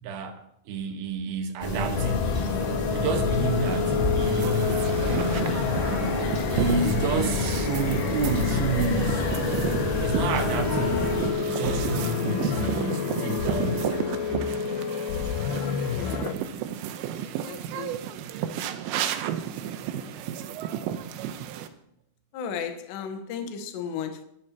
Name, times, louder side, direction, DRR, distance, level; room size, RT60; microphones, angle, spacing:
voice 1, 0.0-2.3 2.9-4.9 6.5-9.4 10.0-14.2, right 3 dB, 65° right, 2.6 m, -30 dB
sound 1, 1.6-11.3, left 1 dB, 45° left, 0.6 m, -29 dB
sound 2, 2.0-16.3, left 7 dB, 85° left, 2.1 m, -28 dB
sound 3, 4.2-21.7, right 10 dB, 90° right, 3.4 m, -33 dB
voice 2, 15.9-16.3 17.2-17.9 22.3-24.2, left 7 dB, 70° left, 3.1 m, -35 dB
23.5 x 11.0 x 2.9 m
omnidirectional pair, 5.6 m